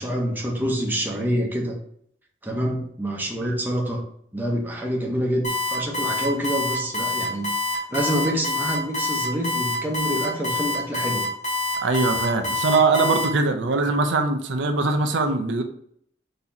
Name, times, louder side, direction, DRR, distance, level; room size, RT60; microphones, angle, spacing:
voice 1, 0.0-1.8 2.4-4.0 4.3-7.5 7.9-11.3, equal, 10° right, 0 dB, 0.7 m, -26 dB
Alarm, 5.4-13.2, left 2 dB, 40° left, 1.5 m, -26 dB
voice 2, 11.8-15.6, right 3 dB, 90° right, 6 dB, 0.6 m, -22 dB
4.0 x 2.9 x 4.1 m, 0.66 s
head